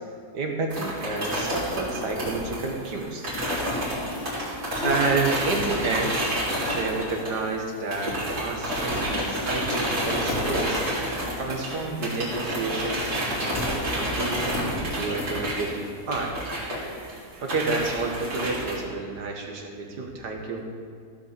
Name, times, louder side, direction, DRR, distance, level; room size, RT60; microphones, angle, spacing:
voice 1, 0.3-3.2 4.8-6.2 6.7-10.8 11.4-16.3 17.4-20.7, right 3 dB, 85° right, 2 dB, 2.1 m, -30 dB
sound 1, 0.7-7.6 7.9-18.8, equal, 65° right, 4.0 m, -29 dB
voice 2, 3.8-5.1 10.0-10.1 10.5-10.7 17.1-17.2, left 2 dB, 45° left, 2 dB, 1.2 m, -39 dB
16.0 x 5.6 x 6.9 m, 2.2 s
omnidirectional pair, 1.7 m